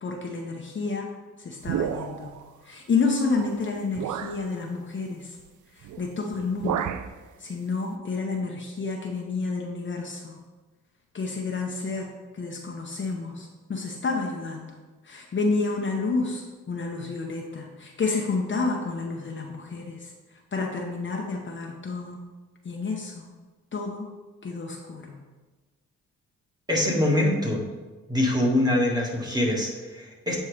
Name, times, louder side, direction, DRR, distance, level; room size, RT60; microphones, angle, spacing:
voice 1, 0.0-1.1 1.4-2.4 2.6-5.4 5.7-6.9 7.4-10.4 11.1-14.7 15.0-22.2 22.6-23.3 23.7-24.1 24.4-25.2, left 4 dB, 35° left, 0 dB, 0.8 m, -30 dB
sound 1, 1.6-2.4 3.3-3.4 4.0-4.4 5.8-6.1 6.3-7.1, right 9 dB, 65° right, 0.5 m, -31 dB
voice 2, 26.7-27.6 28.1-30.4, left 1 dB, 10° right, -2 dB, 1.8 m, -24 dB
8.5 x 4.4 x 3.3 m, 1.3 s
cardioid pair, 80°, 32 cm